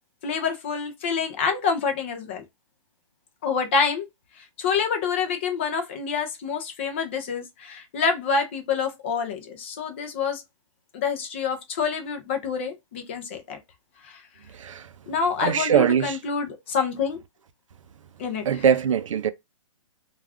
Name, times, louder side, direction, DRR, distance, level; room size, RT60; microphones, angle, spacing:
voice 1, 0.2-2.4 3.4-4.1 4.4-10.4 10.9-13.6 14.1-14.2 15.1-17.2 18.2-18.4, left 5 dB, 20° left, 0.4 m, -27 dB
voice 2, 14.5-14.9 15.4-16.2 18.4-19.3, right 8 dB, 70° right, 0.4 m, -22 dB
2.3 x 2.3 x 3.3 m
hypercardioid pair, 165°, 17 cm